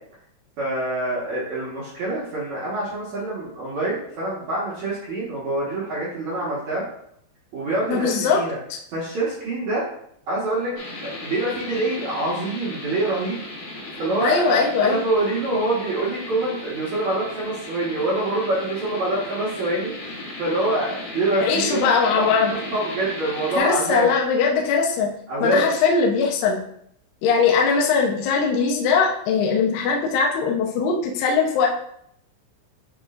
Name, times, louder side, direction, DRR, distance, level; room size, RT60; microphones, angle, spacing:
voice 1, 0.6-6.8 7.5-8.6 8.9-9.8 10.3-10.7 11.0-13.4 14.0-20.1 20.4-22.3 22.7-24.1 25.3-25.7, right 2 dB, 70° right, -8 dB, 1.7 m, -25 dB
voice 2, 7.9-8.4 14.2-15.0 21.4-22.5 23.6-25.1 25.4-26.6 27.2-31.7, left 5 dB, 75° left, -1 dB, 2.5 m, -20 dB
sound 1, 10.8-23.6, left 2 dB, 50° left, 3.2 m, -36 dB
11.0 x 4.3 x 2.5 m, 0.69 s
omnidirectional pair, 5.8 m